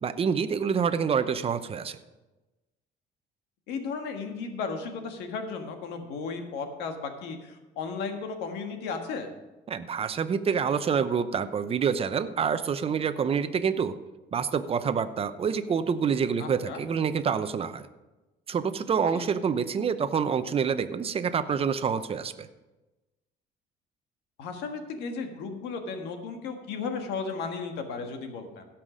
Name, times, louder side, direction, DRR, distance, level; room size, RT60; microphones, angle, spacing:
voice 1, 0.0-2.0 9.7-13.9 14.3-17.9 18.5-22.5, right 6 dB, 35° right, 11 dB, 0.7 m, -27 dB
voice 2, 3.7-9.3 16.4-16.8 19.1-19.3 24.4-28.7, left 5 dB, 85° left, 5 dB, 1.6 m, -35 dB
16.0 x 5.9 x 5.0 m, 1.1 s
cardioid pair, 110°, 17 cm